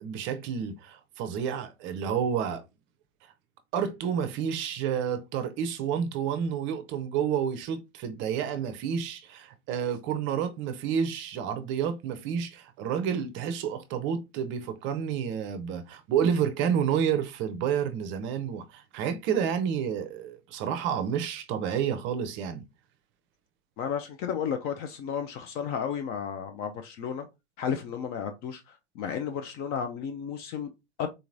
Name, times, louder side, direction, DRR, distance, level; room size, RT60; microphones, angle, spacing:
voice 1, 0.0-2.6 3.7-22.6, right 8 dB, 30° right, 0.6 m, -30 dB
voice 2, 23.8-27.3 27.6-30.7 31.0-31.1, left 7 dB, 30° left, 0.4 m, -33 dB
3.9 x 2.9 x 2.5 m
hypercardioid pair, 100°, 37 cm